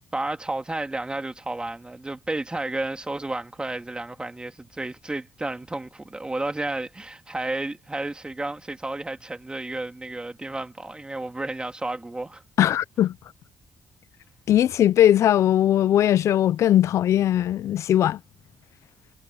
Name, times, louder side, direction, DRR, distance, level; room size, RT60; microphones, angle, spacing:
voice 1, 0.1-12.4, right 2 dB, 20° right, 2.8 m, -32 dB
voice 2, 12.6-13.1 14.5-18.2, left 11 dB, 75° left, 0.5 m, -19 dB
supercardioid pair, 65°, 5 cm